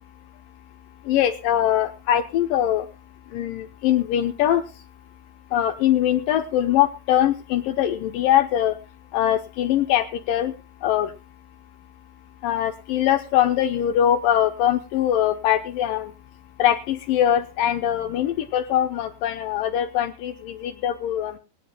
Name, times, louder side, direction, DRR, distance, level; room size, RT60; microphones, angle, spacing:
voice 1, 1.0-2.9 3.3-4.6 5.5-8.8 9.1-10.5 10.8-11.1 12.4-16.1 16.6-21.4, left 11 dB, 75° left, 9 dB, 2.1 m, -22 dB
19.0 x 18.0 x 2.3 m, 0.30 s
omnidirectional pair, 4.7 m